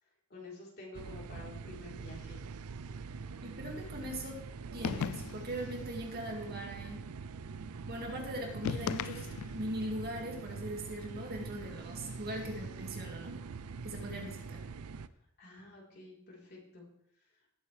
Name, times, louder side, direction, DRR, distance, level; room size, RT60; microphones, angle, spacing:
voice 1, 0.3-2.4 15.2-16.9, left 2 dB, 50° left, -4 dB, 4.0 m, -50 dB
sound 1, 0.9-15.1, right 5 dB, 80° right, 0.5 m, -44 dB
voice 2, 3.4-4.4 4.7-7.1 7.9-13.4 13.8-14.6, right 1 dB, 45° right, 1 dB, 2.3 m, -40 dB
sound 2, 4.8-5.6 8.6-9.7, left 7 dB, 65° left, 0.3 m, -36 dB
18.5 x 8.2 x 3.4 m, 0.72 s
head